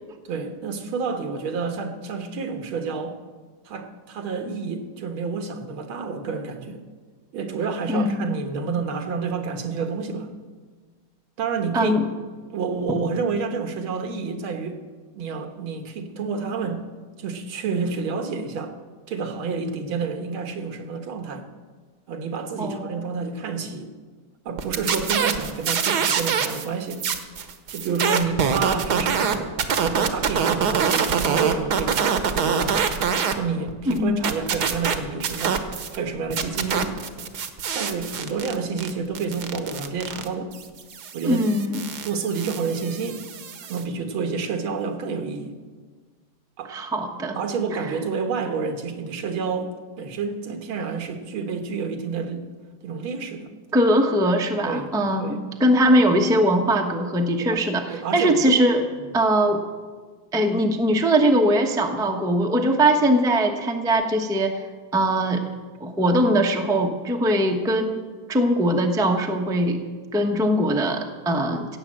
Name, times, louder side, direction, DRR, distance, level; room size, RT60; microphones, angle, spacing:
voice 1, 0.3-3.2 3.7-6.8 7.3-10.3 11.4-12.0 12.5-14.8 15.1-16.9 17.2-18.7 19.1-21.5 22.1-23.9 24.5-27.0 27.7-29.5 29.8-32.8 33.4-35.6 35.9-36.9 37.7-40.5 41.1-41.5 42.0-43.2 43.7-45.5 46.6-46.8 47.4-49.7 50.0-52.5 52.8-53.5 54.7-54.9 55.2-55.4 57.5-57.6 57.9-58.6, right 5 dB, 80° right, 6 dB, 2.1 m, -29 dB
voice 2, 7.9-8.3 11.7-12.1 22.6-23.0 33.9-34.3 41.2-41.8 46.7-47.4 47.7-47.8 53.7-58.8 59.1-59.6 60.3-64.5 64.9-65.5 65.8-68.0 68.3-69.8 70.1-71.8, right 1 dB, 5° right, 3 dB, 0.5 m, -21 dB
sound 1, 24.6-26.6 26.9-33.3 33.7-36.0 36.3-43.8, right 7 dB, 60° right, 1.4 m, -25 dB
16.5 x 8.0 x 7.6 m, 1.5 s
omnidirectional pair, 2.2 m